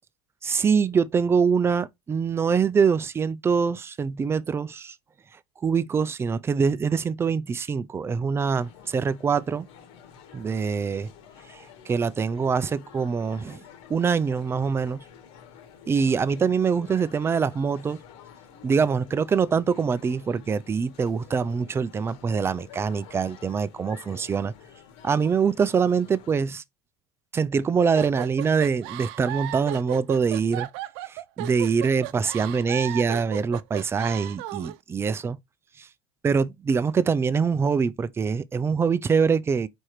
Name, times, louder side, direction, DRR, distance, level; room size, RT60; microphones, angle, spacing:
voice 1, 0.4-5.0 5.6-9.7 10.3-11.1 11.5-13.6 13.9-15.0 15.9-18.0 18.6-24.5 25.0-26.6 27.3-30.7 31.1-35.4 35.8-35.9 36.2-39.7, right 6 dB, 15° right, 0.5 m, -24 dB
sound 1, 8.4-26.4, left 8 dB, 70° left, 1.9 m, -50 dB
sound 2, 27.9-34.8, right 15 dB, 65° right, 0.7 m, -35 dB
4.8 x 4.4 x 4.9 m
supercardioid pair, 125°, 15 cm